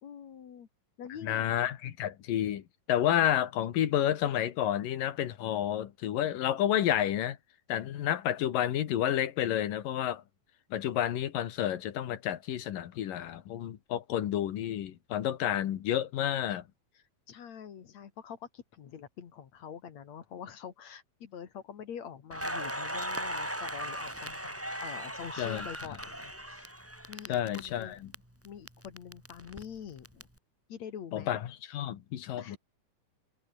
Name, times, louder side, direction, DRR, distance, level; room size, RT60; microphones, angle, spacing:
voice 1, 0.0-0.7 1.0-1.5 17.0-26.7 27.1-28.0 28.4-30.3 30.7-31.3 32.4-32.6, left 8 dB, 55° left, 3.0 m, -45 dB
voice 2, 1.2-7.4 7.7-10.2 10.7-16.6 25.4-25.7 27.3-28.1 31.1-32.6, left 11 dB, 75° left, 3.2 m, -30 dB
Crackle, 22.3-28.2 28.4-30.2, equal, 5° right, 4.0 m, -38 dB
omnidirectional pair, 4.0 m